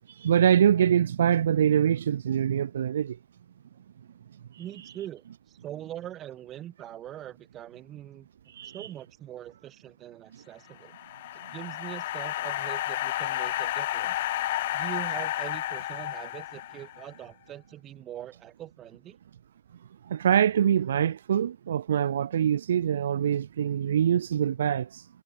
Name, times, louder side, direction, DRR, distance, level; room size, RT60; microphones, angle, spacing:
voice 1, 0.1-3.2 8.5-8.9 20.0-25.1, right 9 dB, 65° right, 0.9 m, -24 dB
voice 2, 4.6-8.3 8.7-10.9 11.5-14.3 14.7-19.2, right 12 dB, 20° right, 4.1 m, -42 dB
sound 1, 10.7-17.1, left 15 dB, 50° left, 2.4 m, -31 dB
hypercardioid pair, 135°, 0 cm